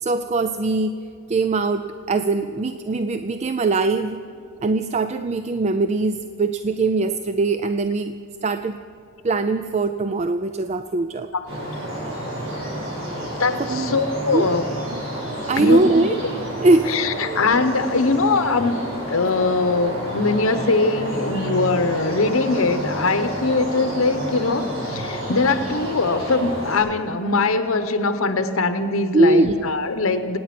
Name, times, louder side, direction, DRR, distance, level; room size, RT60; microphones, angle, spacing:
voice 1, 0.0-1.0 1.3-4.3 4.6-8.2 8.4-8.8 9.2-11.3 13.7-14.0 14.3-14.5 14.9-15.0 15.5-16.2 16.6-17.4 29.1-29.6, right 3 dB, 35° right, 10 dB, 0.4 m, -21 dB
sound 1, 11.5-26.8, right 1 dB, 70° right, 5.3 m, -30 dB
voice 2, 13.4-14.6 15.6-15.8 16.9-18.8 19.1-30.4, left 3 dB, 85° left, 9 dB, 0.8 m, -21 dB
26.0 x 9.3 x 5.9 m, 2.4 s
head